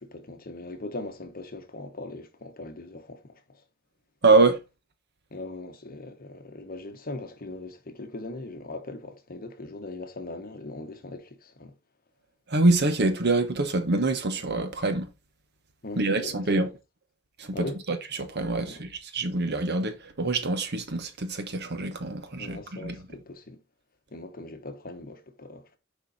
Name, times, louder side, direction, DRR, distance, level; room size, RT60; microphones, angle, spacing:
voice 1, 0.0-3.6 5.3-11.8 15.8-16.7 17.5-17.8 18.6-18.8 22.4-23.6 24.1-25.8, left 2 dB, 45° left, 1.3 m, -40 dB
voice 2, 4.2-4.6 12.5-15.1 16.0-16.7 17.4-23.0, right 3 dB, 55° right, 1.2 m, -25 dB
6.4 x 5.3 x 4.2 m
head